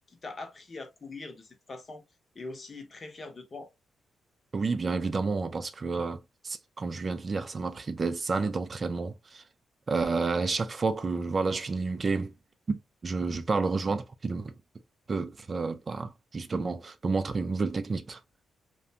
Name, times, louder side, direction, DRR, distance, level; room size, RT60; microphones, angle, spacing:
voice 1, 0.1-2.0 2.3-3.7, left 3 dB, 35° left, 0.7 m, -42 dB
voice 2, 4.5-9.4 9.9-12.3 12.7-14.5 15.1-18.2, right 4 dB, 35° right, 0.3 m, -30 dB
2.4 x 2.2 x 2.7 m
cardioid pair, 85°, 0 cm